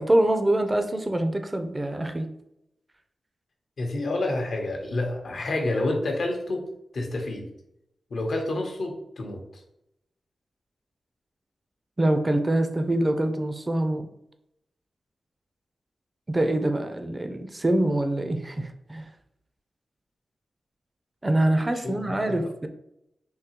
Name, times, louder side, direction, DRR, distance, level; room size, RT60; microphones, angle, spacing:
voice 1, 0.0-2.3 12.0-14.1 16.3-19.1 21.2-22.7, right 1 dB, 30° right, 7 dB, 0.5 m, -25 dB
voice 2, 3.8-6.6 6.9-7.5 8.1-9.6 21.7-22.5, left 2 dB, 70° left, 2 dB, 0.8 m, -29 dB
3.7 x 2.7 x 2.9 m, 0.82 s
cardioid pair, 50°, 0 cm